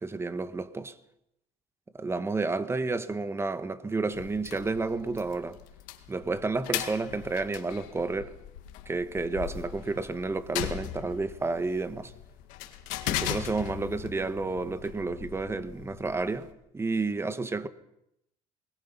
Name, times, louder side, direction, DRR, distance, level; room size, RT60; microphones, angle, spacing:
voice 1, 0.0-0.9 2.0-5.6 6.1-8.3 8.9-12.1 13.1-16.5 16.7-17.7, right 3 dB, 20° right, 1.6 m, -31 dB
sound 1, 4.1-16.5, left 12 dB, 85° left, 2.0 m, -39 dB
23.0 x 20.5 x 5.7 m
supercardioid pair, 90°, 13 cm